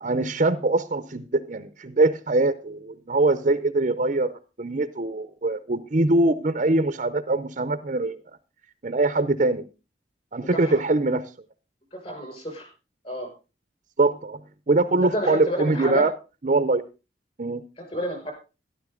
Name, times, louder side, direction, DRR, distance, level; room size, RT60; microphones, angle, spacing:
voice 1, 0.0-8.2 8.8-9.7 10.3-11.3 14.0-14.4 14.7-16.1 16.4-16.8 17.4-17.6, right 2 dB, 45° right, 12 dB, 0.7 m, -23 dB
voice 2, 10.4-10.8 11.9-12.7 13.0-13.3 15.0-16.0 17.8-18.3, equal, 35° left, 5 dB, 5.7 m, -30 dB
13.0 x 12.0 x 3.8 m, 0.31 s
head